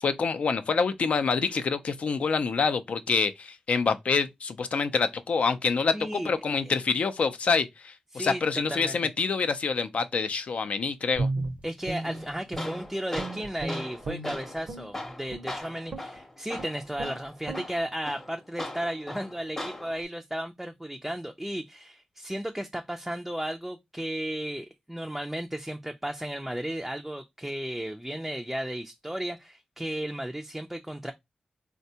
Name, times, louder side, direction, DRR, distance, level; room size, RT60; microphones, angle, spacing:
voice 1, 0.0-11.3, left 5 dB, 65° left, 0.4 m, -26 dB
voice 2, 5.9-6.3 6.7-6.8 8.1-8.4 8.7-9.0 11.6-31.1, right 1 dB, 5° right, 0.3 m, -34 dB
Guitar, 11.1-12.9 13.1-14.9 15.3-15.5 15.9-16.2 16.6-16.7 17.0-17.2 17.4-17.7, right 2 dB, 65° right, 0.6 m, -34 dB
Tools, 12.0-20.0, left 1 dB, 20° left, 0.7 m, -40 dB
3.5 x 2.2 x 2.7 m
cardioid pair, 65°, 2 cm